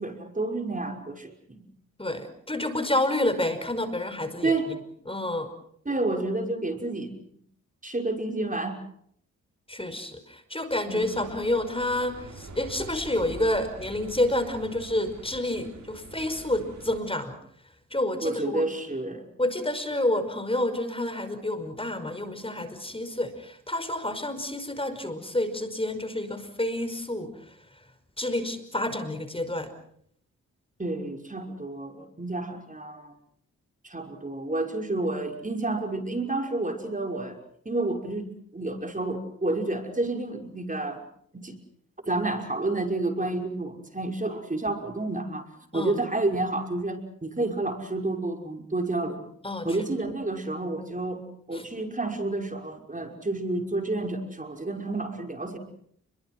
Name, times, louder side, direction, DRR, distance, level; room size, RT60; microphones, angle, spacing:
voice 1, 0.0-1.7 4.4-4.7 5.9-7.2 7.8-8.8 10.9-11.2 18.2-19.2 30.8-33.1 33.8-37.4 37.7-41.0 41.3-41.6 42.1-49.3 49.6-51.2 51.5-55.6, right 2 dB, 25° right, 4 dB, 5.8 m, -30 dB
voice 2, 2.0-4.8 5.1-5.5 9.7-17.4 17.9-18.6 19.4-27.3 28.2-29.7 45.7-45.9 49.4-49.7 51.5-51.6, left 1 dB, 15° left, 10 dB, 5.3 m, -29 dB
sound 1, 11.0-17.0, right 3 dB, 55° right, 6.9 m, -45 dB
30.0 x 23.0 x 6.2 m, 0.67 s
supercardioid pair, 50°, 33 cm